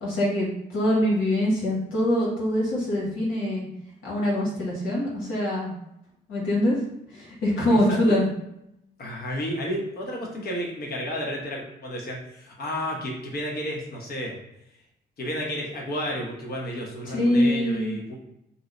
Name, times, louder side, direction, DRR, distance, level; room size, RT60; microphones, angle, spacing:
voice 1, 0.0-3.7 4.0-5.7 6.3-6.8 7.1-8.2 17.1-18.0, left 1 dB, 85° left, -4 dB, 1.2 m, -24 dB
voice 2, 9.0-14.4 15.2-18.1, equal, 50° left, -1 dB, 1.0 m, -32 dB
2.7 x 2.0 x 3.7 m, 0.82 s
cardioid pair, 90°, 20 cm